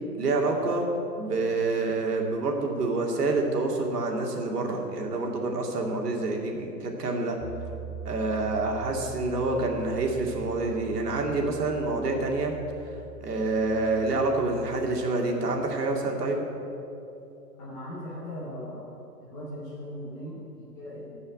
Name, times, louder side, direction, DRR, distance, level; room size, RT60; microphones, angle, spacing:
voice 1, 0.2-0.9 1.2-7.4 8.0-12.5 13.2-16.5, right 3 dB, 70° right, 1 dB, 2.4 m, -27 dB
Piano, 7.4-15.1, right 3 dB, 35° left, 3.3 m, -43 dB
voice 2, 17.6-21.2, equal, 5° left, -6 dB, 0.5 m, -39 dB
14.0 x 5.5 x 8.3 m, 2.8 s
hypercardioid pair, 145°, 48 cm